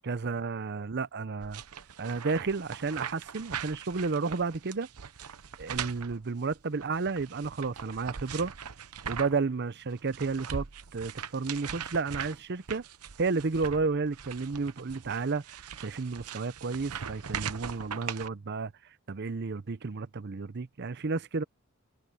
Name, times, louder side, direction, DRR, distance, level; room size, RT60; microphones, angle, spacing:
voice 1, 0.0-1.6 2.0-4.9 5.6-8.5 9.1-10.7 10.9-12.8 13.2-18.7 19.1-21.4, right 4 dB, 50° right, 0.6 m, -32 dB
sound 1, 1.4-9.5 9.8-18.3, right 7 dB, 90° right, 0.9 m, -41 dB
head